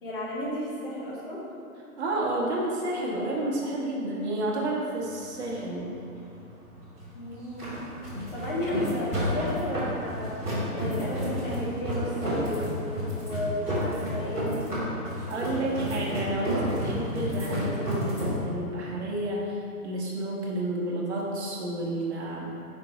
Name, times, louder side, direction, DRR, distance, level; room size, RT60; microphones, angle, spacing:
voice 1, 0.0-1.4 7.1-7.8 8.3-10.4 10.7-12.8 13.1-14.7 15.1-15.7, equal, 35° left, -7 dB, 1.4 m, -33 dB
voice 2, 2.0-5.9 15.3-22.5, right 1 dB, 45° right, -4 dB, 1.2 m, -30 dB
sound 1, 5.0-18.4, equal, 5° left, 0.8 m, -31 dB
6.0 x 5.3 x 3.0 m, 2.7 s
hypercardioid pair, 170°, 46 cm